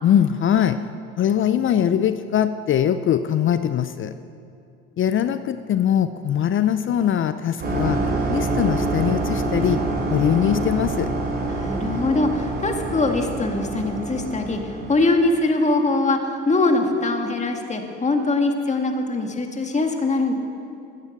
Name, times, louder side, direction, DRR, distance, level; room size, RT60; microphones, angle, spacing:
voice 1, 0.0-0.8 1.2-4.1 5.0-9.8 10.1-11.1, left 9 dB, 45° left, 12 dB, 0.6 m, -21 dB
sound 1, 7.6-15.2, right 2 dB, 35° right, 4.0 m, -26 dB
voice 2, 11.5-20.3, left 2 dB, 25° left, 4 dB, 1.9 m, -22 dB
13.5 x 9.6 x 8.0 m, 2.5 s
supercardioid pair, 80°, 29 cm